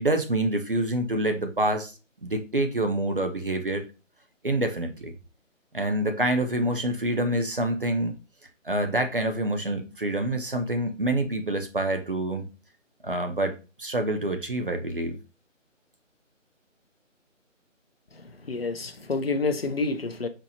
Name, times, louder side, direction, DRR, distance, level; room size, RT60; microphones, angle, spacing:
voice 1, 0.0-1.9 2.2-3.8 4.4-5.1 5.7-8.1 8.6-12.5 13.0-15.2, right 1 dB, 45° right, 0.5 m, -27 dB
voice 2, 18.5-20.3, left 3 dB, 50° left, 0.4 m, -28 dB
4.1 x 2.0 x 2.7 m
figure-of-eight pair, 160°, 39 cm